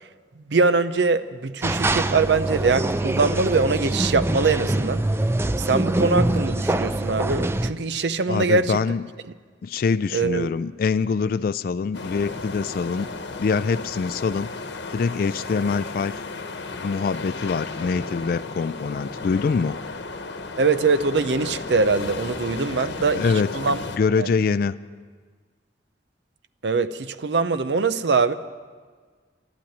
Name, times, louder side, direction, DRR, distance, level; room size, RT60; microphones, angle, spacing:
voice 1, 0.4-5.0 5.6-8.8 10.1-10.5 20.6-23.8 24.2-24.3 26.6-28.3, right 4 dB, 75° right, 13 dB, 0.6 m, -22 dB
Evening in hospital, 1.6-7.7, right 1 dB, 15° right, 0.4 m, -24 dB
voice 2, 8.3-9.0 9.6-13.1 13.4-14.5 14.9-16.3 16.7-19.8 22.8-22.9 23.1-24.7, left 5 dB, 55° left, 13 dB, 0.3 m, -24 dB
sound 1, 11.9-24.0, left 3 dB, 85° left, 1.0 m, -34 dB
12.0 x 11.5 x 9.1 m, 1.5 s
head